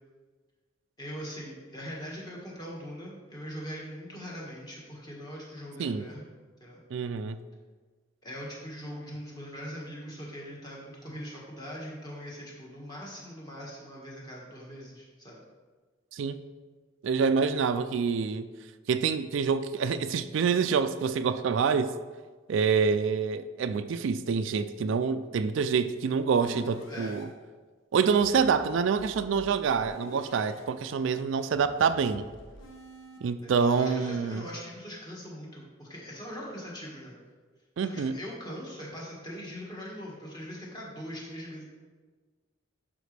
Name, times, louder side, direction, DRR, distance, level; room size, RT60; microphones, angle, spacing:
voice 1, 1.0-6.3 6.6-6.8 8.2-15.4 26.9-27.1 33.4-37.1 37.8-41.6, equal, 20° left, 1.7 m, -41 dB
voice 2, 6.9-7.4 16.1-16.4 17.0-18.5 18.9-21.9 22.5-27.3 27.9-32.2 33.2-34.4 37.8-38.2, right 5 dB, 70° right, 0.3 m, -26 dB
sound 1, 26.4-27.2 28.1-30.6 31.5-33.2, left 1 dB, 70° left, 1.1 m, -48 dB
11.5 x 5.1 x 3.3 m
head